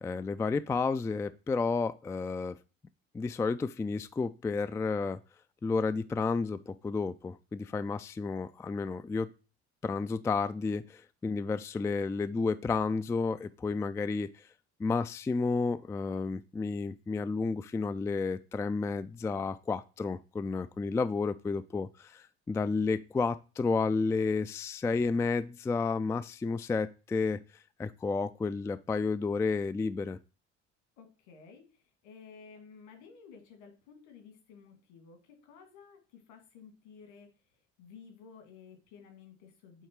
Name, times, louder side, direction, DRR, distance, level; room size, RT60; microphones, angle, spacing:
voice 1, 0.0-2.5 3.1-5.2 5.6-9.3 9.8-14.4 14.8-27.4 27.8-30.2, left 4 dB, 10° left, 13 dB, 0.3 m, -31 dB
voice 2, 31.0-39.9, left 6 dB, 65° left, 6 dB, 2.3 m, -54 dB
8.2 x 3.5 x 4.5 m, 0.33 s
figure-of-eight pair, 55°, 37 cm